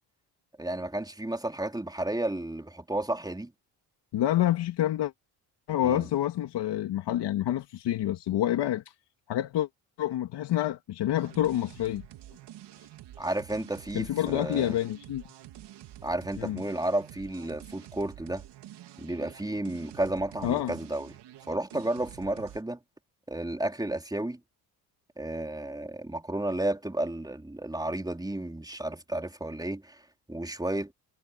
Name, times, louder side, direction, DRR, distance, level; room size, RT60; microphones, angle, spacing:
voice 1, 0.6-3.5 5.8-6.1 13.2-14.8 16.0-18.4 19.0-21.1 21.5-22.8 23.3-24.4 25.2-30.0 30.3-30.9, right 1 dB, 10° right, 3.8 m, -32 dB
voice 2, 4.1-5.1 5.7-8.9 9.3-9.7 10.0-12.0 13.9-15.2 16.4-16.6 20.4-20.7, left 12 dB, 70° left, 2.5 m, -28 dB
sound 1, 11.1-22.6, right 13 dB, 75° right, 2.9 m, -48 dB
supercardioid pair, 75°, 42 cm